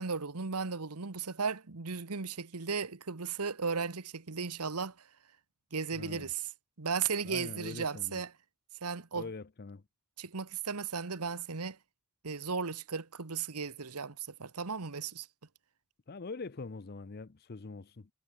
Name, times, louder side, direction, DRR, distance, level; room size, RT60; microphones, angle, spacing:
voice 1, 0.0-4.9 5.7-6.5 6.8-8.3 8.8-9.3 10.2-11.8 12.2-15.3, right 5 dB, 90° right, 1.3 m, -35 dB
voice 2, 5.9-6.3 7.2-8.2 9.1-9.8 16.1-18.1, left 3 dB, 45° left, 0.6 m, -43 dB
head